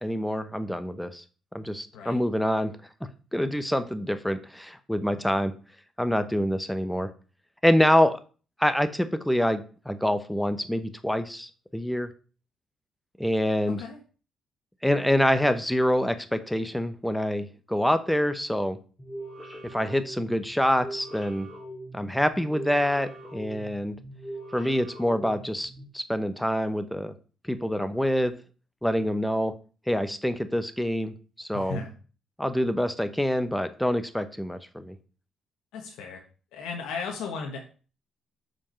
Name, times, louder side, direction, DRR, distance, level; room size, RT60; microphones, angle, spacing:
voice 1, 0.0-1.2 1.5-2.7 3.3-5.5 6.0-7.1 7.6-8.2 8.6-12.1 13.2-13.8 14.8-18.8 19.7-21.5 21.9-24.0 24.5-27.1 27.5-28.3 28.8-29.5 29.9-31.8 32.4-34.9, equal, 5° left, 11 dB, 0.8 m, -26 dB
sound 1, 19.0-25.9, right 1 dB, 20° left, 2.4 m, -42 dB
voice 2, 31.5-31.9 35.7-36.2 36.5-37.6, left 4 dB, 90° left, 1 dB, 1.2 m, -35 dB
5.8 x 4.7 x 5.7 m, 0.38 s
cardioid pair, 90°, 0 cm